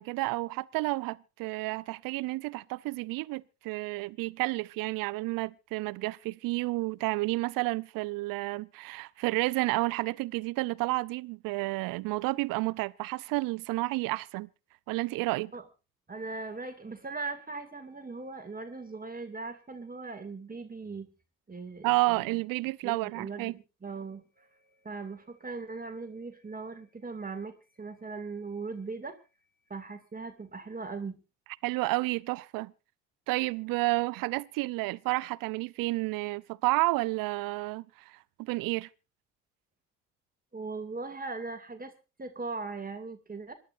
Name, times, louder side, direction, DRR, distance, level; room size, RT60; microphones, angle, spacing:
voice 1, 0.0-14.5 14.9-15.5 21.8-23.5 31.6-32.7 33.3-38.9, right 22 dB, 65° right, 0.7 m, -31 dB
voice 2, 16.1-21.1 21.5-22.2 22.8-29.2 29.7-31.2 40.5-41.9 42.2-43.5, right 4 dB, 25° right, 2.4 m, -39 dB
26.5 x 11.0 x 2.6 m
hypercardioid pair, 55°, 36 cm